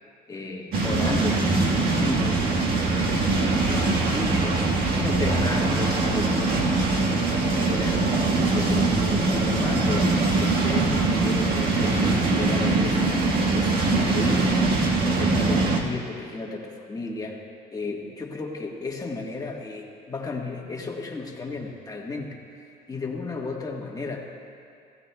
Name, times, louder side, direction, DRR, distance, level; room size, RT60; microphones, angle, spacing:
voice 1, 0.3-4.7 5.0-8.0 8.5-17.4 17.7-22.4 22.9-24.3, left 3 dB, 20° left, 0 dB, 1.4 m, -33 dB
sound 1, 0.7-15.8, right 3 dB, 65° right, 1.5 m, -22 dB
19.0 x 15.0 x 2.3 m, 2.4 s
cardioid pair, 110°, 17 cm